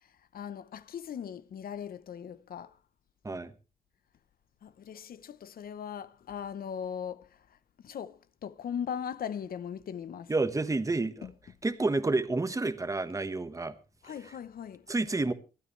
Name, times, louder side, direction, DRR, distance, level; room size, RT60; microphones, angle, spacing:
voice 1, 0.0-2.8 4.6-7.6 7.8-10.3 11.2-11.3 14.0-14.9, left 8 dB, 80° left, 0.8 m, -39 dB
voice 2, 10.3-11.3 11.6-13.7 14.9-15.3, right 3 dB, 20° right, 1.3 m, -29 dB
25.5 x 9.5 x 3.2 m
cardioid pair, 90°, 15 cm